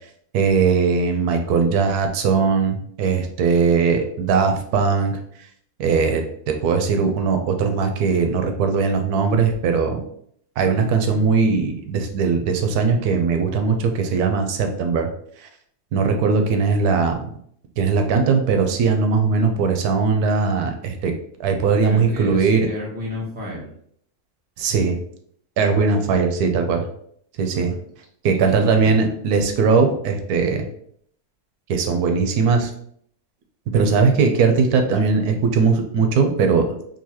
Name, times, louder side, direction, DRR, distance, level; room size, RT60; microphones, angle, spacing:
voice 1, 0.3-5.2 5.8-10.0 10.6-15.1 15.4-15.5 15.9-17.3 17.8-21.1 21.4-22.7 24.6-25.0 25.6-26.9 27.4-27.7 28.2-30.7 31.7-32.7 33.7-36.7, right 5 dB, 90° right, 5 dB, 1.1 m, -19 dB
voice 2, 21.8-23.7 27.5-27.8 28.5-29.1, equal, 5° right, -6 dB, 0.9 m, -32 dB
3.8 x 2.7 x 2.8 m, 0.65 s
omnidirectional pair, 1.6 m